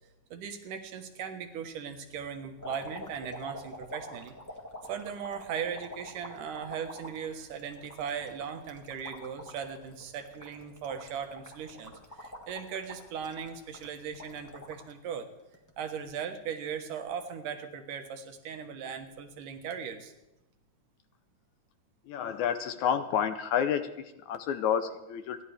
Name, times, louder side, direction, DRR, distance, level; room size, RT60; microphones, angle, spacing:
voice 1, 0.3-4.4 4.9-11.9 12.2-15.3 15.8-20.1, right 7 dB, 80° right, 6 dB, 2.8 m, -38 dB
sound 1, 2.6-14.9 15.4-16.1 17.1-17.3, left 1 dB, 30° left, 0.3 m, -46 dB
voice 2, 22.1-25.4, left 8 dB, 75° left, 10 dB, 1.9 m, -30 dB
29.5 x 11.0 x 3.4 m, 0.96 s
omnidirectional pair, 3.7 m